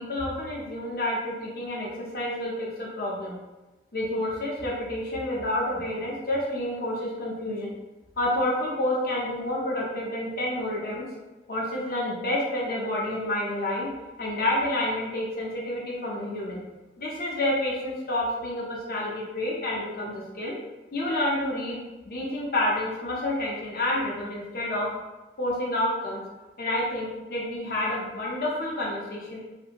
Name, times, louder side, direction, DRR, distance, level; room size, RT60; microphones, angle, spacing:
voice 1, 0.0-3.4 3.9-7.7 8.2-11.0 11.5-13.9 14.2-16.6 17.0-20.5 20.9-21.8 22.1-24.9 25.4-26.2 26.6-29.4, left 1 dB, 55° left, -4 dB, 0.6 m, -29 dB
2.8 x 2.5 x 2.4 m, 1.1 s
head